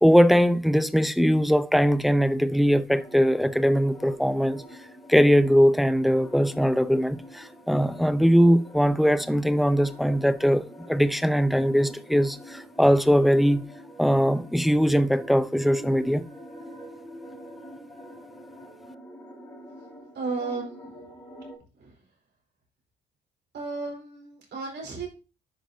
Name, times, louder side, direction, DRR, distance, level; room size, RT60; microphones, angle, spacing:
voice 1, 0.0-4.6 5.1-13.6 14.0-16.2, equal, ahead, 0.5 m, -21 dB
sound 1, 2.9-21.6, equal, 15° left, 4.2 m, -45 dB
voice 2, 20.1-20.9 21.8-22.1 23.5-25.1, right 4 dB, 60° right, 4.7 m, -34 dB
10.5 x 5.7 x 2.7 m
cardioid pair, 90°, 20 cm